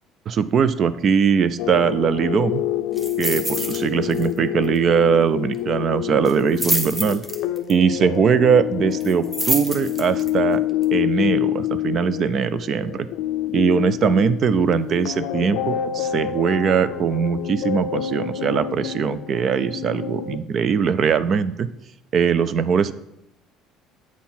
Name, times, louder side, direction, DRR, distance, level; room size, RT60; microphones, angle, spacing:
voice 1, 0.3-2.6 3.2-7.2 7.7-10.6 10.9-13.1 13.5-21.7 22.1-22.9, right 6 dB, 40° right, 15 dB, 0.3 m, -21 dB
sound 1, 1.6-20.4, left 12 dB, 70° left, 0.4 m, -27 dB
sound 2, 3.0-3.8 4.1-4.4 4.6-4.7 6.2-7.7 9.0-10.3 10.8-10.9, right 1 dB, 10° right, 0.9 m, -26 dB
8.3 x 4.4 x 5.6 m, 0.81 s
cardioid pair, 145°, 0 cm